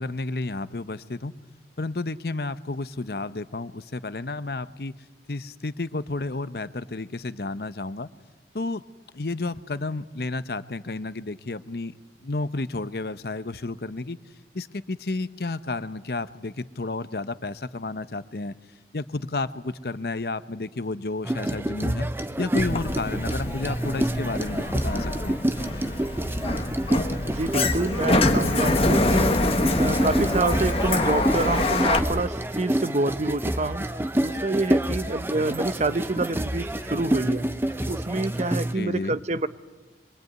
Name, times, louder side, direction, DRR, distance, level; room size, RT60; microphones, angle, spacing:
voice 1, 0.0-1.3 1.8-4.9 5.3-8.1 8.5-8.8 9.1-14.2 14.5-18.5 18.9-22.1 22.4-25.4 38.8-39.2, left 3 dB, 60° left, 13 dB, 0.8 m, -31 dB
sound 1, 21.2-38.7, right 1 dB, 15° right, 0.8 m, -28 dB
Sliding door, 22.6-32.0, left 2 dB, 35° left, 1.4 m, -25 dB
voice 2, 27.3-29.4 29.8-33.8 34.2-37.5 37.9-39.5, right 2 dB, 40° right, 13 dB, 0.8 m, -27 dB
24.5 x 23.0 x 9.3 m, 1.2 s
head